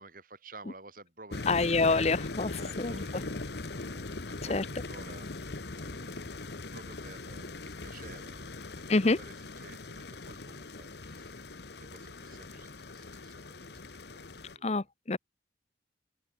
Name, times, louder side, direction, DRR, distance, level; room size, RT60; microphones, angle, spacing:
voice 1, 0.0-1.5 2.0-13.8 14.1-14.9, right 3 dB, 50° right, 6.1 m, -53 dB
sound 1, 1.3-14.5, left 3 dB, 60° left, 1.2 m, -40 dB
voice 2, 1.5-2.9 4.5-4.6 8.9-9.2 14.6-15.2, left 3 dB, 35° left, 0.7 m, -27 dB
open air
head